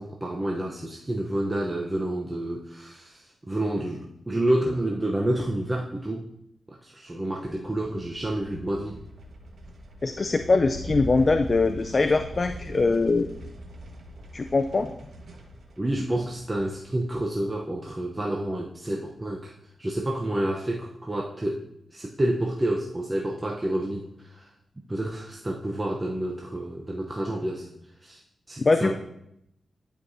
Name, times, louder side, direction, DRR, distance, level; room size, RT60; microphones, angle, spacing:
voice 1, 0.0-6.3 6.7-9.0 15.8-19.5 19.8-21.6 21.9-24.5 24.9-27.7 28.0-28.2 28.5-28.9, right 1 dB, 20° right, -1 dB, 0.7 m, -29 dB
sound 1, 7.8-18.1, right 1 dB, 75° right, 1.3 m, -42 dB
voice 2, 10.0-13.3 14.3-14.9 28.6-28.9, left 3 dB, 40° left, 8 dB, 0.4 m, -22 dB
11.5 x 4.6 x 2.6 m, 0.78 s
cardioid pair, 75°, 0 cm